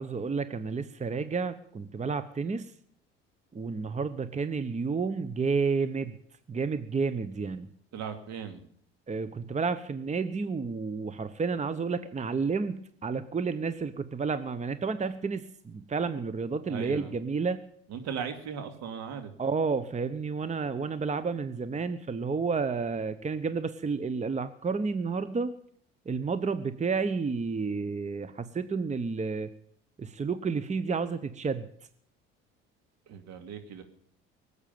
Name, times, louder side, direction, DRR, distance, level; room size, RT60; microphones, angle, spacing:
voice 1, 0.0-2.7 3.5-6.1 6.5-7.7 9.1-17.6 19.4-25.5 26.1-29.5 30.0-31.7, right 4 dB, 25° right, 13 dB, 1.0 m, -31 dB
voice 2, 7.9-8.6 16.7-17.1 17.9-19.3 33.1-33.8, right 7 dB, 65° right, 7 dB, 2.4 m, -37 dB
19.0 x 8.2 x 9.3 m, 0.65 s
hypercardioid pair, 65°, 29 cm